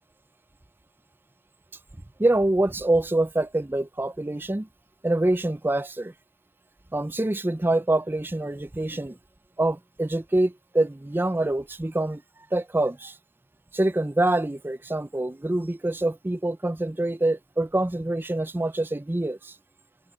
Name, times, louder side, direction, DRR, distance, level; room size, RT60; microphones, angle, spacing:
voice 1, 2.2-4.7 5.0-6.1 6.9-9.2 9.6-12.2 12.5-13.2 13.7-19.6, right 2 dB, 10° right, 0.4 m, -25 dB
head